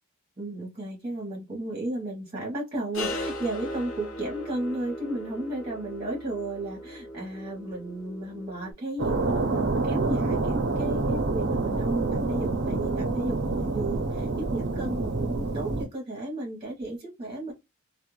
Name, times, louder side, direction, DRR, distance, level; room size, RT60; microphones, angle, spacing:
voice 1, 0.4-17.5, right 1 dB, 25° right, 1.0 m, -34 dB
sound 1, 2.9-8.7, left 1 dB, 65° left, 0.6 m, -38 dB
sound 2, 9.0-15.8, right 3 dB, 55° right, 0.5 m, -27 dB
2.4 x 2.1 x 3.0 m
head